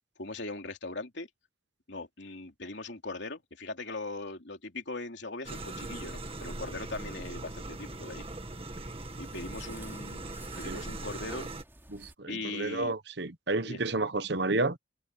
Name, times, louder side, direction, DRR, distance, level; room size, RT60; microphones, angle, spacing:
voice 1, 0.2-1.3 1.9-8.2 9.2-11.5 12.3-12.9 13.6-13.8, left 2 dB, 65° left, 3.2 m, -40 dB
sound 1, 5.4-11.6, right 2 dB, 30° right, 1.9 m, -40 dB
sound 2, 5.9-12.1, right 1 dB, 10° right, 3.2 m, -54 dB
voice 2, 11.9-14.8, right 2 dB, 55° right, 1.1 m, -31 dB
head